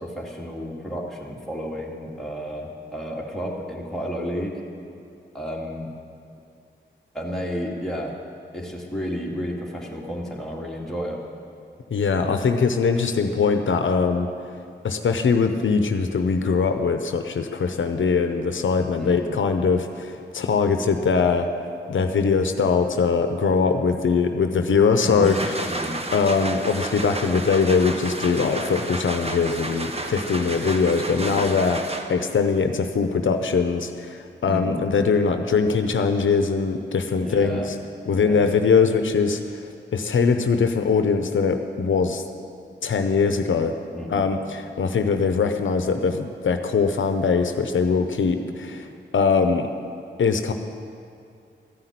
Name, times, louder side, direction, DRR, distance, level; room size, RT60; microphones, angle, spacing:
voice 1, 0.0-4.6 5.3-5.9 7.1-8.1 8.5-11.2 19.0-19.4 25.1-26.0 31.1-31.5 34.4-34.8 37.2-37.7 38.1-38.5 43.9-44.4 48.3-48.4, equal, ahead, -3 dB, 2.3 m, -32 dB
voice 2, 11.9-14.3 14.8-21.5 21.9-25.6 26.1-37.8 38.1-39.4 39.9-42.2 42.8-43.7 44.1-48.9 49.1-49.7 50.2-50.5, left 5 dB, 85° left, 7 dB, 0.7 m, -22 dB
sound 1, 25.0-32.4, right 2 dB, 30° right, 1.1 m, -32 dB
14.0 x 5.8 x 9.3 m, 2.4 s
cardioid pair, 55°, 20 cm